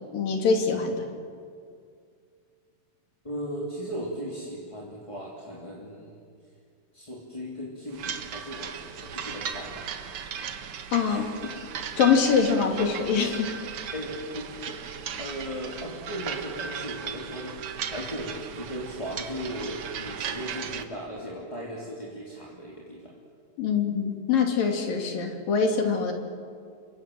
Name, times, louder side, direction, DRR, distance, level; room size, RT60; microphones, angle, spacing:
voice 1, 0.1-1.0 10.9-11.3 12.0-13.5 23.6-26.1, left 5 dB, 80° left, 4 dB, 4.4 m, -24 dB
voice 2, 3.2-6.2 6.9-9.8 11.0-11.5 13.9-17.6 17.9-23.1, equal, 10° left, -3 dB, 2.8 m, -37 dB
sound 1, 7.9-20.8, right 7 dB, 55° right, 1.7 m, -37 dB
29.5 x 25.5 x 7.7 m, 2.2 s
omnidirectional pair, 4.0 m